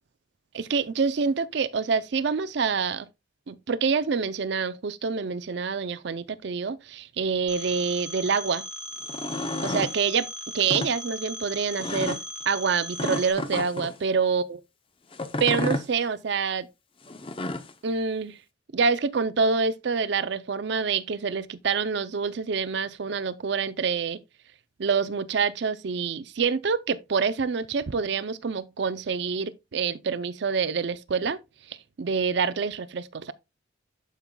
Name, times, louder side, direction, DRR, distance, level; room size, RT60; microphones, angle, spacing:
voice 1, 0.5-3.1 3.5-8.6 9.6-10.3 10.5-12.2 12.5-14.6 15.4-16.7 17.8-18.4 18.7-24.2 24.8-31.4 31.7-33.3, right 5 dB, 55° right, 0.5 m, -26 dB
Telephone, 7.5-13.3, equal, 5° right, 1.0 m, -38 dB
sound 1, 9.0-9.9 10.6-10.9 11.8-12.2 13.0-13.9 15.1-15.9 17.1-17.7, left 2 dB, 25° left, 0.6 m, -30 dB
11.5 x 5.4 x 2.2 m
head